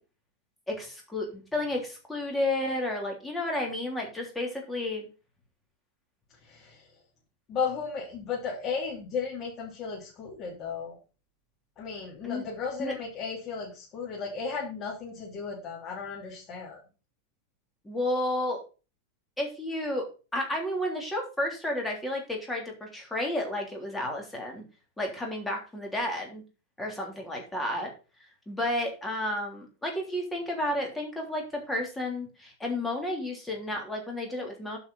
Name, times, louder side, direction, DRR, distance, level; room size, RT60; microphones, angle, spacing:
voice 1, 0.7-5.1 12.2-12.4 12.8-12.9 17.8-18.6 19.4-24.6 25.0-26.4 26.8-27.9 28.5-34.8, left 1 dB, 5° left, 0 dB, 3.2 m, -32 dB
voice 2, 6.4-6.9 7.5-11.0 11.8-16.8, left 5 dB, 30° left, -3 dB, 3.3 m, -35 dB
8.7 x 5.6 x 5.5 m, 0.32 s
supercardioid pair, 150°, 0 cm